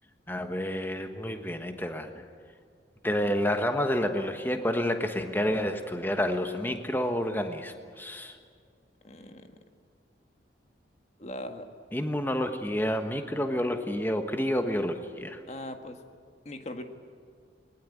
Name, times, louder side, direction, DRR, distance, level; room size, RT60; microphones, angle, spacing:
voice 1, 0.3-2.2 3.0-8.4 11.9-15.4, equal, 10° left, 6 dB, 1.3 m, -29 dB
voice 2, 9.0-9.5 11.2-11.7 15.5-16.0 16.4-16.8, left 1 dB, 35° left, 6 dB, 1.7 m, -39 dB
20.5 x 20.0 x 9.8 m, 2.1 s
head